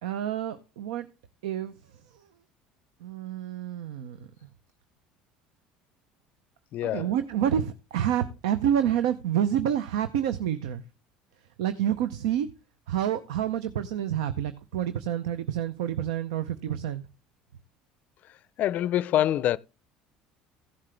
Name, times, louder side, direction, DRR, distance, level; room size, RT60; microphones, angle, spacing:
voice 1, 0.0-1.1 1.4-1.7 2.1-2.2 3.0-4.2 6.8-10.8 11.6-12.5 12.9-17.0, right 10 dB, 80° right, 0.6 m, -28 dB
voice 2, 6.7-7.1 18.6-19.6, left 12 dB, 55° left, 0.4 m, -25 dB
15.5 x 7.4 x 3.3 m
hypercardioid pair, 75°, 3 cm